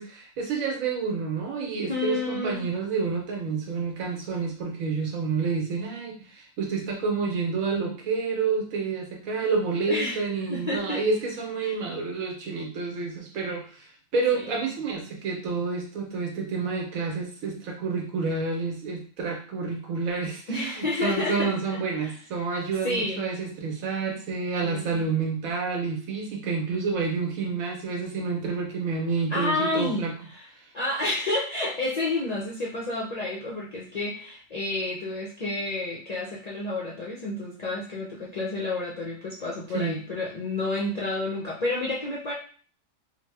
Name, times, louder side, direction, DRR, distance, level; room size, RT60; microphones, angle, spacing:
voice 1, 0.0-30.1 39.7-40.0, right 4 dB, 85° right, 1 dB, 1.2 m, -29 dB
voice 2, 1.9-2.7 9.9-10.2 10.5-11.0 11.6-11.8 14.3-14.7 20.5-21.5 22.0-22.1 22.8-23.2 24.1-24.2 24.6-25.1 29.3-30.5 30.7-42.3, left 2 dB, 55° left, -5 dB, 0.4 m, -30 dB
2.9 x 2.1 x 3.3 m, 0.43 s
omnidirectional pair, 1.4 m